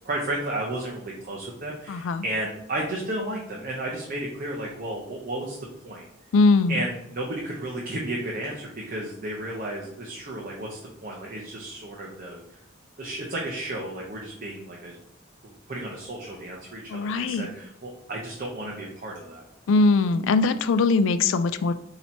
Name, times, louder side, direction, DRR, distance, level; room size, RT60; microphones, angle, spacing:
voice 1, 0.0-6.1 6.7-12.6 13.0-15.0 15.4-19.4, right 1 dB, 45° right, -2 dB, 0.7 m, -33 dB
voice 2, 1.9-2.2 6.3-6.8 16.9-17.5 19.7-21.7, left 3 dB, 70° left, 13 dB, 0.3 m, -21 dB
4.2 x 2.9 x 4.4 m, 0.78 s
head